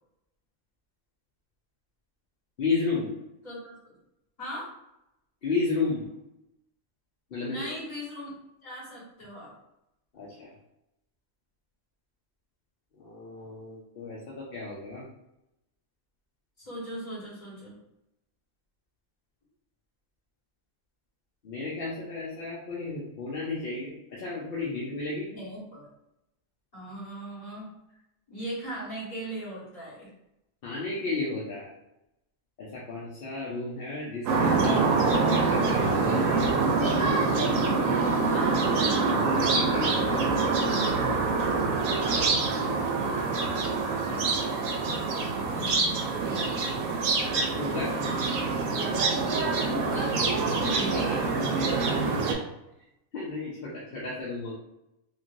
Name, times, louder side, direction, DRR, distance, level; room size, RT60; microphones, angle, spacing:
voice 1, 2.6-3.1 5.4-6.1 7.3-7.6 10.1-10.5 13.0-15.1 21.4-25.3 30.6-31.7 32.6-36.5 37.9-38.4 39.2-41.2 41.5-41.7 47.6-47.9 51.5-52.0 53.1-54.5, left 3 dB, 55° left, -6 dB, 0.7 m, -33 dB
voice 2, 3.4-3.9 4.4-4.7 7.5-8.4 8.6-9.5 16.6-17.8 25.3-25.9 26.7-27.7 28.3-30.1 38.3-38.7 45.2-46.4 49.6-51.4, right 1 dB, 30° left, -9 dB, 1.5 m, -38 dB
sound 1, 34.3-52.3, right 4 dB, 70° right, 1.0 m, -25 dB
3.1 x 2.5 x 2.5 m, 0.88 s
omnidirectional pair, 1.5 m